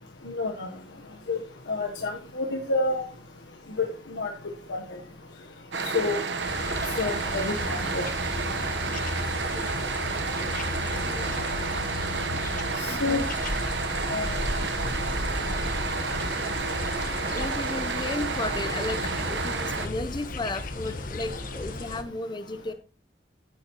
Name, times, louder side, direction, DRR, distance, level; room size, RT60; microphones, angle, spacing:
voice 1, 0.2-0.7 1.3-1.4 1.7-3.0 3.8-4.3 4.7-4.8 5.9-6.2 7.0-8.0 12.8-13.2 14.1-14.3, left 3 dB, 85° left, 2 dB, 1.1 m, -28 dB
sound 1, 5.7-19.9, right 4 dB, 80° right, 1.1 m, -31 dB
sound 2, 6.4-22.0, left 2 dB, 50° left, 1.2 m, -34 dB
voice 2, 9.5-9.9 11.0-11.3 12.9-13.3 17.3-19.0 19.3-22.7, left 2 dB, 25° left, 11 dB, 0.7 m, -34 dB
14.5 x 8.9 x 3.0 m, 0.37 s
head